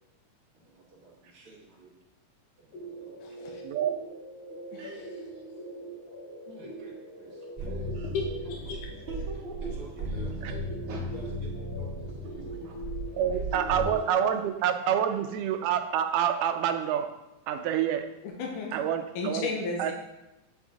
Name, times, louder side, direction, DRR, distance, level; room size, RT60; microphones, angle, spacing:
voice 1, 0.5-1.9 2.6-3.2 6.4-6.9 7.2-8.1 9.6-10.6 11.1-11.3 11.8-12.4 13.3-14.0 14.3-14.4, right 2 dB, 45° right, -6 dB, 2.4 m, -49 dB
sound 1, 2.7-14.0, right 1 dB, 60° left, 2.3 m, -43 dB
voice 2, 3.2-3.6 4.7-4.8 8.1-8.8 18.2-18.7 19.2-19.9, left 4 dB, 90° left, 0 dB, 2.4 m, -33 dB
sound 2, 7.6-13.8, right 1 dB, 10° right, 1.6 m, -36 dB
voice 3, 9.1-9.7 10.9-11.1 12.4-13.2 13.5-13.6 15.1-15.2, right 3 dB, 70° right, -5 dB, 2.6 m, -44 dB
voice 4, 13.2-17.1 17.5-18.1 18.7-19.5 19.8-19.9, right 9 dB, 85° right, 7 dB, 2.1 m, -27 dB
9.1 x 4.3 x 3.6 m, 0.99 s
omnidirectional pair, 3.6 m